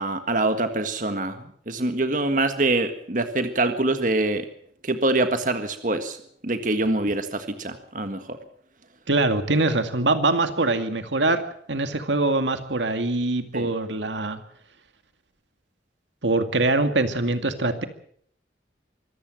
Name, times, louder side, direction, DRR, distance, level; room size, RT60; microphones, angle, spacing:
voice 1, 0.0-4.5 4.8-6.2 6.4-8.4 13.5-13.7, right 2 dB, 45° right, 8 dB, 1.7 m, -25 dB
voice 2, 9.1-11.4 11.7-14.4 16.2-17.8, right 2 dB, 85° right, 8 dB, 2.2 m, -23 dB
24.5 x 15.0 x 7.6 m, 0.63 s
head